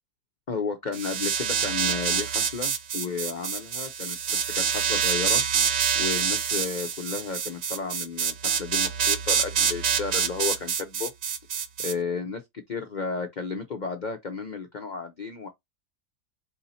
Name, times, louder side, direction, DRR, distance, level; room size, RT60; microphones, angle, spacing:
voice 1, 0.5-4.2 4.5-5.4 6.0-11.1 11.8-12.4 12.7-15.5, left 5 dB, 65° left, 0.4 m, -33 dB
sound 1, 0.9-11.9, right 7 dB, 55° right, 0.8 m, -26 dB
4.7 x 2.8 x 4.0 m
omnidirectional pair, 1.7 m